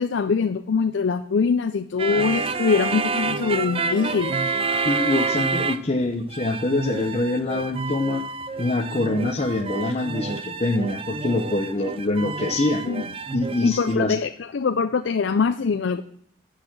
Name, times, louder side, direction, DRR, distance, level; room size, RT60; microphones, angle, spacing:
voice 1, 0.0-4.4 12.8-13.0 13.6-16.0, left 5 dB, 70° left, 10 dB, 0.5 m, -23 dB
sound 1, 2.0-6.0 6.3-14.0, right 4 dB, 30° right, 0.5 m, -28 dB
voice 2, 4.8-8.3 8.6-12.8 13.3-14.2, left 2 dB, 35° left, 4 dB, 0.7 m, -24 dB
10.5 x 6.5 x 7.3 m, 0.66 s
head